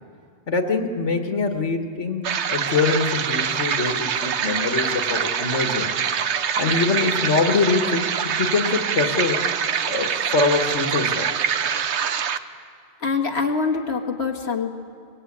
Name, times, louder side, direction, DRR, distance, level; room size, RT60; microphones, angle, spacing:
voice 1, 0.5-5.9 6.6-9.4 9.9-11.3, left 4 dB, 85° left, 4 dB, 2.1 m, -24 dB
sound 1, 2.2-12.4, right 7 dB, 75° right, 1.1 m, -24 dB
voice 2, 13.0-14.7, left 4 dB, 65° left, 2 dB, 2.0 m, -24 dB
25.0 x 21.5 x 8.7 m, 2.3 s
omnidirectional pair, 1.2 m